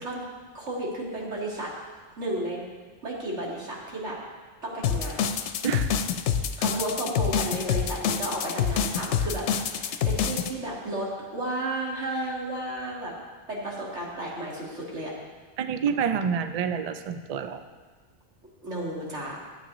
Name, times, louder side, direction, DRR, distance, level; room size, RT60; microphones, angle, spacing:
voice 1, 0.5-1.7 2.2-2.7 3.0-4.2 4.6-5.3 6.6-13.1 13.5-15.1 18.6-19.3, right 1 dB, 80° right, -4 dB, 2.2 m, -33 dB
sound 1, 4.8-10.5, left 7 dB, 80° left, 0.9 m, -26 dB
voice 2, 5.6-6.0 15.6-17.6, right 7 dB, 60° right, 9 dB, 0.4 m, -28 dB
12.0 x 7.9 x 3.0 m, 1.4 s
omnidirectional pair, 1.2 m